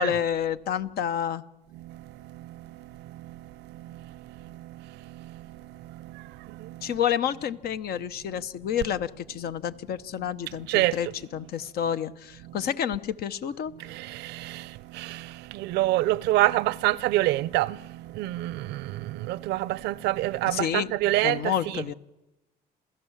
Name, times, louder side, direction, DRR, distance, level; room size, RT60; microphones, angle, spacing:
voice 1, 0.0-1.4 6.8-13.7 20.5-20.9 21.2-21.9, left 9 dB, 65° left, 1.0 m, -29 dB
voice 2, 1.7-7.0 8.3-8.4 8.7-8.9 9.4-9.5 10.2-11.4 11.8-11.9 12.4-12.7 13.8-21.9, right 17 dB, 85° right, 0.7 m, -29 dB
27.5 x 16.0 x 7.3 m
cardioid pair, 110°, 17 cm